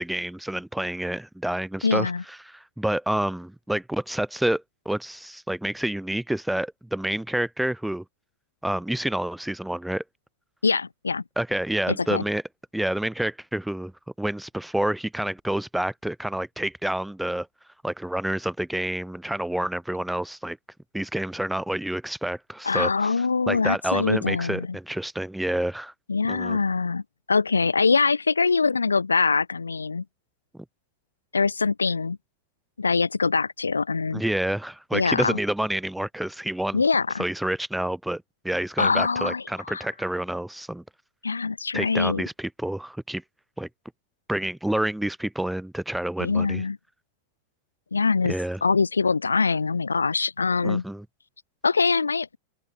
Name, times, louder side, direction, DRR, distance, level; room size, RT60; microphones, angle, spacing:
voice 1, 0.0-8.0 8.6-10.0 11.4-12.4 12.7-13.9 14.2-17.5 17.8-20.6 20.9-25.9 26.3-26.6 34.1-36.8 37.2-40.8 41.7-43.2 43.6-43.7 44.3-46.6 48.2-48.6 50.6-51.0, right 1 dB, 5° right, 4.1 m, -28 dB
voice 2, 1.8-2.2 10.6-11.2 12.0-12.2 22.6-24.7 26.1-27.0 27.3-30.0 31.3-32.2 32.8-34.2 34.9-35.4 36.7-37.2 38.8-39.8 41.2-42.2 46.2-46.8 47.9-48.3 48.6-50.8 51.6-52.3, left 4 dB, 75° left, 1.3 m, -23 dB
open air
figure-of-eight pair, 90°, 0 cm